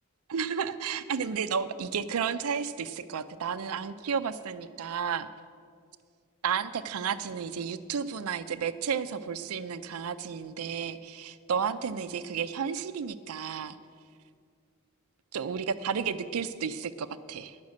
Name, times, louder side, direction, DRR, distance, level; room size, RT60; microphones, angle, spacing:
voice 1, 0.3-5.3 6.4-13.8 15.3-17.6, right 6 dB, 90° right, 10 dB, 0.5 m, -32 dB
11.0 x 6.5 x 8.3 m, 2.2 s
head